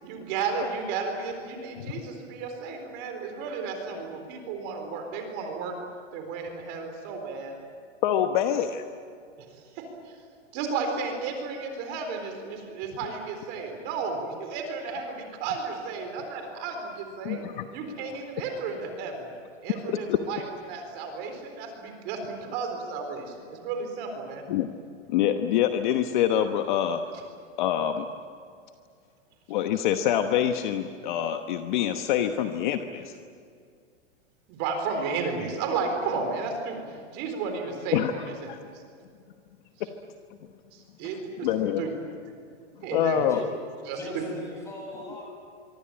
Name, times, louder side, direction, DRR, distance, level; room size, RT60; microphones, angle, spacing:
voice 1, 0.0-5.8 6.1-7.5 9.5-9.9 10.5-17.4 17.7-19.2 19.6-20.4 20.7-24.4 34.5-36.8 37.1-38.5 40.7-41.5 41.8-41.9 42.8-43.3 43.8-44.2, right 5 dB, 30° right, 5 dB, 4.0 m, -33 dB
voice 2, 8.0-8.8 17.2-17.7 19.8-20.2 24.5-24.7 25.1-27.0 27.6-28.0 29.5-33.1 37.9-38.1 38.5-38.6 39.8-39.9 41.4-41.8 42.9-43.4, left 10 dB, 40° left, 7 dB, 1.1 m, -25 dB
voice 3, 43.9-45.2, left 1 dB, 10° left, -1 dB, 7.3 m, -38 dB
25.0 x 24.5 x 8.9 m, 2.2 s
supercardioid pair, 170°, 37 cm